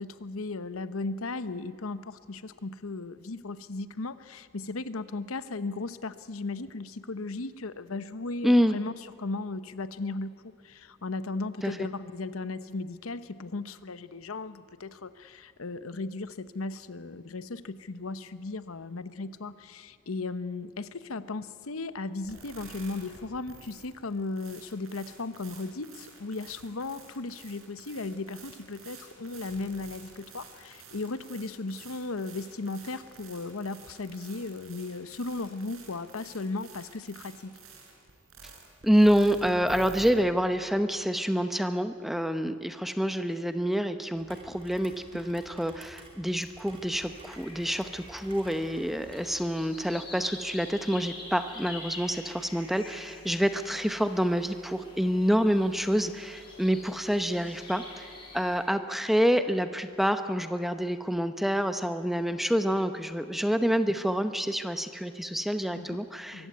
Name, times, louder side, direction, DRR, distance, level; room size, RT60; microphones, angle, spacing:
voice 1, 0.0-8.9 9.2-37.5 65.7-66.0 66.3-66.5, left 3 dB, 90° left, 13 dB, 0.9 m, -36 dB
voice 2, 8.4-8.8 11.6-11.8 38.8-58.1 58.3-66.5, equal, ahead, 9 dB, 0.7 m, -27 dB
sound 1, 22.2-40.1, right 4 dB, 85° right, 4.6 m, -50 dB
Rain, 44.1-49.3, right 2 dB, 25° right, 3.2 m, -52 dB
sound 2, 46.9-58.6, left 2 dB, 25° left, 4.9 m, -47 dB
23.0 x 15.0 x 9.5 m, 2.7 s
head